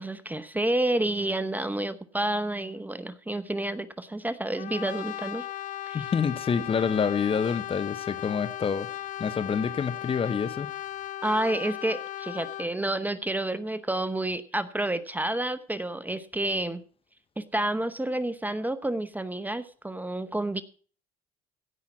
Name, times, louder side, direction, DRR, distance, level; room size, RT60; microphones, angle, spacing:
voice 1, 0.0-5.5 5.8-6.0 11.2-16.8 17.4-20.6, right 1 dB, 10° right, 0.8 m, -29 dB
Brass instrument, 4.6-12.7, left 13 dB, 50° left, 0.5 m, -37 dB
voice 2, 5.9-8.9 9.2-10.7, left 6 dB, 30° left, 0.9 m, -27 dB
16.5 x 5.7 x 5.9 m
hypercardioid pair, 75°, 17 cm